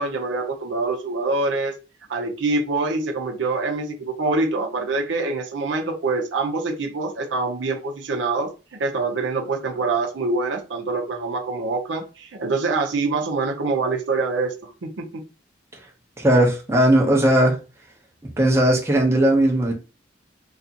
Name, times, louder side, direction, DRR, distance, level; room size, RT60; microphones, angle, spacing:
voice 1, 0.0-1.8 2.1-15.2, right 3 dB, 80° right, 0.6 m, -25 dB
voice 2, 16.2-17.6 18.4-19.7, right 1 dB, 15° right, 0.6 m, -17 dB
2.4 x 2.3 x 2.8 m
head